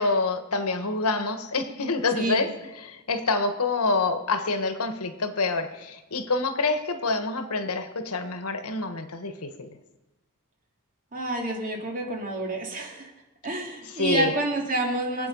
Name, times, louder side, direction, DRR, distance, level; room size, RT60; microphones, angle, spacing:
voice 1, 0.0-2.5 2.8-9.7 14.0-14.3, left 3 dB, 80° left, 8 dB, 1.3 m, -27 dB
voice 2, 11.1-13.1 13.4-15.3, right 2 dB, 40° right, 1 dB, 2.7 m, -29 dB
23.0 x 8.2 x 5.4 m, 1.0 s
head